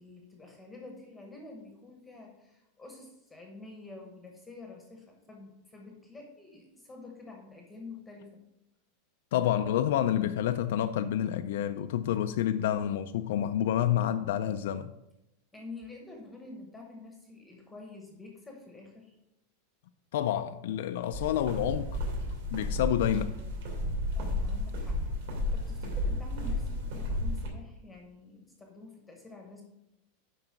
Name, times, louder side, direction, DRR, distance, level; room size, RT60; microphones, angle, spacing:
voice 1, 0.0-8.4 15.5-19.2 24.1-25.0 25.5-29.6, left 3 dB, 5° left, 1.0 m, -48 dB
voice 2, 9.3-14.9 20.1-21.9 22.5-23.3, left 11 dB, 65° left, 0.4 m, -28 dB
sound 1, 21.1-27.5, left 1 dB, 65° right, 2.6 m, -32 dB
7.8 x 5.4 x 5.9 m
supercardioid pair, 175°, 0 cm